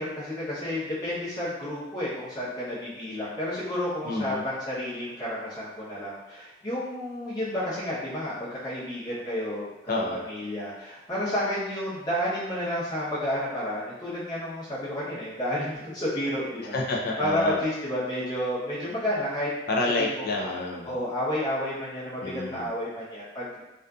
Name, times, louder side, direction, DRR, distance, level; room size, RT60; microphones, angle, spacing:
voice 1, 0.0-16.8 17.2-19.5 20.0-20.5 20.8-23.5, left 1 dB, 20° left, -10 dB, 0.7 m, -31 dB
voice 2, 4.0-4.4 9.9-10.2 16.7-17.6 19.7-21.0 22.2-22.7, left 2 dB, 50° left, -1 dB, 0.4 m, -28 dB
2.5 x 2.4 x 2.3 m, 1.0 s
head